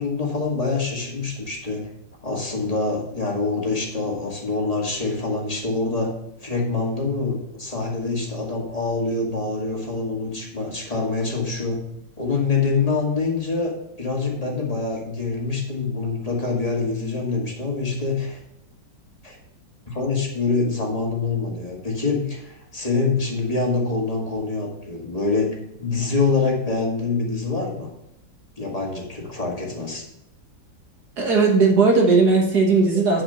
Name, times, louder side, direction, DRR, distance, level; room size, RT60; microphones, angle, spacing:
voice 1, 0.0-1.8 2.2-6.2 6.4-11.9 12.2-18.4 19.2-19.4 19.9-27.9 28.6-30.0, left 4 dB, 20° left, -1 dB, 2.0 m, -25 dB
voice 2, 31.2-33.2, right 4 dB, 55° right, 0 dB, 1.8 m, -17 dB
10.5 x 5.0 x 5.6 m, 0.84 s
omnidirectional pair, 2.1 m